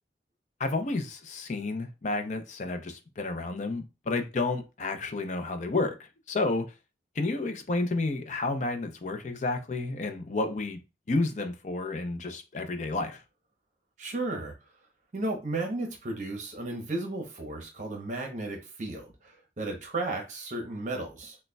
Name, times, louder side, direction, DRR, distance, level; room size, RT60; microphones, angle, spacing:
voice 1, 0.6-5.9 6.3-6.7 7.2-10.8 11.1-13.2, left 3 dB, 40° left, 0.5 m, -31 dB
voice 2, 14.0-14.5 15.1-19.1 19.6-21.4, right 2 dB, 45° right, 0.8 m, -34 dB
6.3 x 2.2 x 2.2 m
head